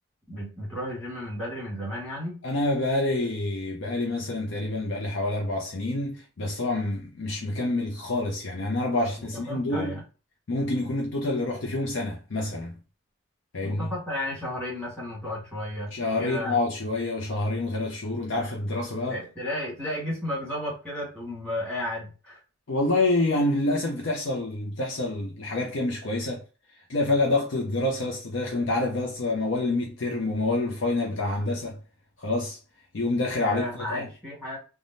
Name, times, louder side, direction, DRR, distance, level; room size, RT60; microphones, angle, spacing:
voice 1, 0.3-2.4 9.2-10.0 13.6-16.6 19.1-22.4 33.3-34.6, left 1 dB, 5° left, 1.6 m, -33 dB
voice 2, 2.4-10.0 10.5-12.8 13.5-13.9 15.9-19.2 22.7-26.4 26.9-31.8 32.2-32.6 32.9-34.1, left 2 dB, 60° left, 0.6 m, -27 dB
3.4 x 2.2 x 2.5 m
head